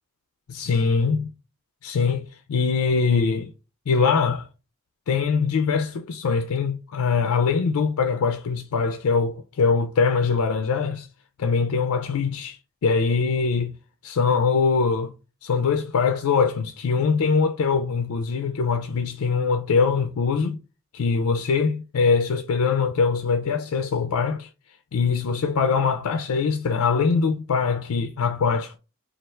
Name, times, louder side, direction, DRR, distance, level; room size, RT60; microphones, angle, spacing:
voice 1, 0.5-1.3 1.8-3.5 3.9-4.5 5.1-11.1 11.4-13.8 14.0-15.1 15.4-20.6 20.9-24.5 24.9-28.8, left 5 dB, 90° left, 0.4 m, -22 dB
3.3 x 2.4 x 4.3 m
head